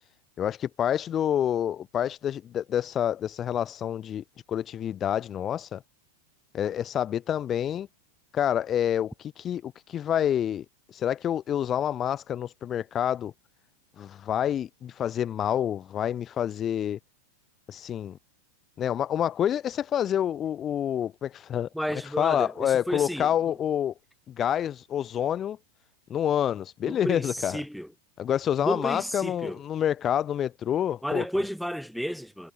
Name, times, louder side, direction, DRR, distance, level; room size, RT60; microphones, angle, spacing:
voice 1, 0.4-5.8 6.5-7.9 8.3-13.3 14.0-17.0 17.7-18.2 18.8-23.9 24.3-25.6 26.1-27.6 28.2-31.2, left 10 dB, 25° left, 3.3 m, -28 dB
voice 2, 21.7-23.3 26.8-27.9 28.6-29.6 31.0-32.5, equal, ahead, 5.5 m, -32 dB
figure-of-eight pair, 90°, 0 cm